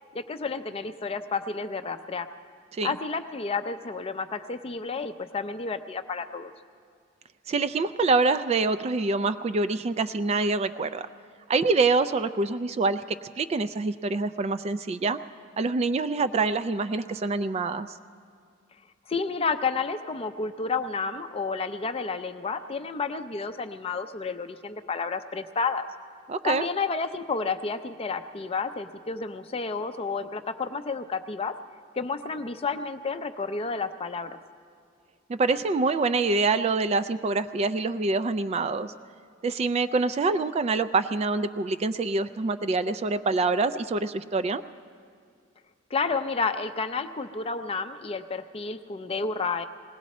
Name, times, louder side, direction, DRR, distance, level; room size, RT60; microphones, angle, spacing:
voice 1, 0.1-2.3 2.8-6.5 19.1-25.8 26.4-31.5 32.0-34.4 45.9-49.6, left 4 dB, 30° left, 9 dB, 0.5 m, -31 dB
voice 2, 7.5-11.1 11.5-15.2 15.6-17.9 26.3-26.6 35.3-38.9 39.4-44.6, right 3 dB, 30° right, 12 dB, 0.3 m, -25 dB
20.0 x 17.5 x 4.2 m, 2.2 s
head